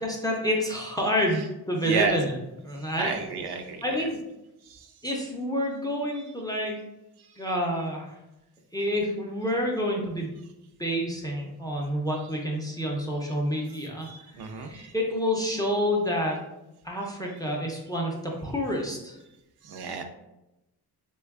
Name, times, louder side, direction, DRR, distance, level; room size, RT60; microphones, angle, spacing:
voice 1, 0.0-2.3 2.6-3.1 3.8-4.2 5.0-6.8 7.4-8.2 8.7-10.4 10.8-14.1 14.3-16.4 16.8-19.2, equal, 10° left, -1 dB, 0.3 m, -28 dB
voice 2, 1.8-2.2 3.0-4.1 4.7-4.9 6.1-6.2 14.0-14.9 19.6-20.0, right 5 dB, 75° right, 5 dB, 0.5 m, -32 dB
3.2 x 2.2 x 3.4 m, 0.94 s
wide cardioid pair, 165°, 39 cm